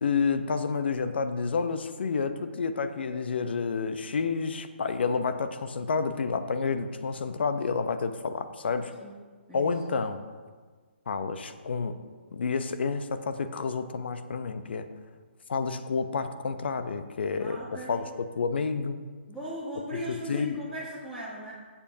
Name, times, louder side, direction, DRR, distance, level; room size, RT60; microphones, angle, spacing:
voice 1, 0.0-8.9 9.5-10.2 11.1-11.9 12.3-14.9 15.5-17.6 17.9-19.0 20.1-20.6, left 5 dB, 60° left, 9 dB, 0.8 m, -29 dB
voice 2, 17.4-18.0 19.3-21.5, equal, 5° left, -10 dB, 1.7 m, -38 dB
15.5 x 7.0 x 2.8 m, 1.5 s
figure-of-eight pair, 135°, 6 cm